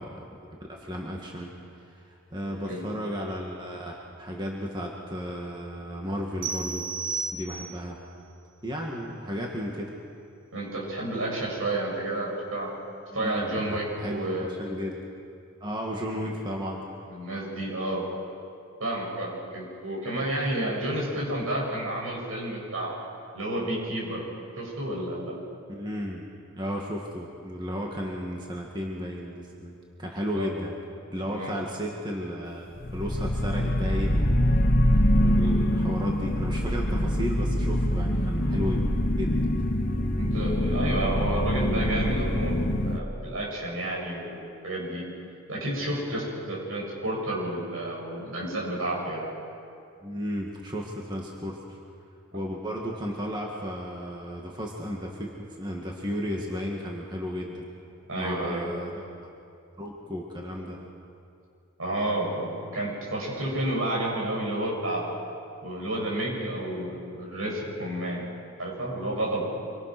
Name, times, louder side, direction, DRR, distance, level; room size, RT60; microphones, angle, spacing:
voice 1, 0.6-6.9 7.3-8.0 8.6-9.9 13.1-15.0 15.6-16.9 25.7-26.3 26.5-30.7 31.1-34.3 35.1-38.8 39.2-39.5 50.0-51.8 52.3-57.7 58.2-59.1 59.8-60.8, equal, 20° right, -1 dB, 2.1 m, -34 dB
voice 2, 2.4-2.9 10.5-12.7 13.1-14.5 16.2-16.3 17.0-18.0 18.8-22.9 23.3-24.2 24.6-25.4 30.3-30.5 31.2-31.6 40.2-42.6 42.8-45.0 45.5-49.3 58.1-58.7 61.8-65.1 65.6-68.3 68.6-69.4, right 1 dB, 75° right, -3 dB, 7.8 m, -30 dB
sound 1, 6.4-8.0, right 4 dB, 60° right, 3.0 m, -33 dB
sound 2, 32.8-43.0, equal, 45° left, 1.1 m, -24 dB
26.0 x 24.0 x 6.2 m, 2.5 s
head